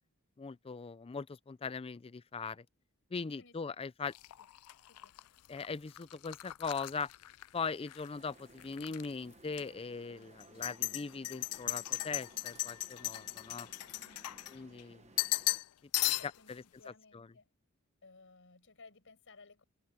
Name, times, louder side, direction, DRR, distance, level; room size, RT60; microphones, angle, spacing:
voice 1, 0.4-2.7 3.1-4.1 5.5-7.1 7.5-13.7 14.5-15.1 16.5-16.6 17.1-17.2, left 5 dB, 25° left, 0.4 m, -40 dB
sound 1, 4.1-8.1 8.4-9.1 9.5-9.6 10.4-14.8 15.2-15.7 15.9-16.5, left 19 dB, 85° left, 0.4 m, -37 dB
voice 2, 4.8-5.2 13.9-14.6 16.1-17.5 18.0-19.6, left 3 dB, 60° left, 5.5 m, -59 dB
sound 2, 8.1-15.6, right 3 dB, 30° right, 1.0 m, -60 dB
head